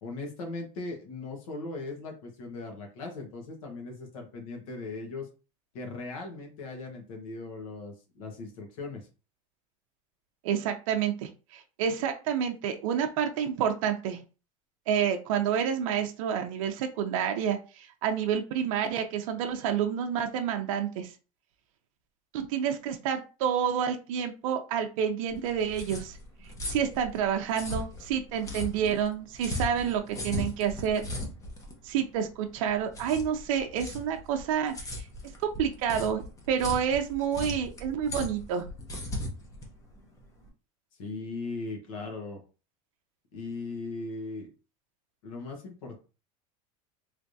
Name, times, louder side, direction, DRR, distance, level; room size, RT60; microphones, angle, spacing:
voice 1, 0.0-5.3 5.7-9.1 41.0-42.4 43.3-44.5 45.2-46.0, left 3 dB, 80° left, 2 dB, 1.4 m, -38 dB
voice 2, 10.4-14.2 14.9-21.1 22.3-26.2 26.7-31.1 31.8-35.1 35.4-36.2 36.5-38.7, right 8 dB, 75° right, 5 dB, 0.5 m, -29 dB
sound 1, 25.3-40.5, left 1 dB, 20° left, 0.8 m, -38 dB
3.3 x 3.1 x 2.7 m, 0.33 s
supercardioid pair, 145°, 17 cm